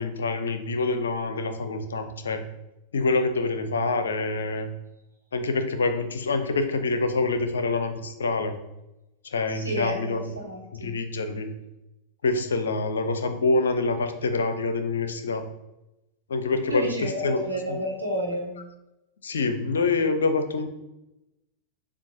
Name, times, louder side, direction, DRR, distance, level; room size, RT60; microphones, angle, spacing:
voice 1, 0.0-2.4 2.9-4.7 5.3-8.6 9.3-10.4 10.7-11.5 12.2-15.5 16.3-17.4 17.7-17.8 19.2-20.7, left 3 dB, 70° left, 9 dB, 0.5 m, -26 dB
voice 2, 9.5-10.9 16.7-18.6, equal, 85° right, -2 dB, 1.2 m, -31 dB
6.9 x 2.4 x 2.7 m, 0.94 s
figure-of-eight pair, 90°, 0 cm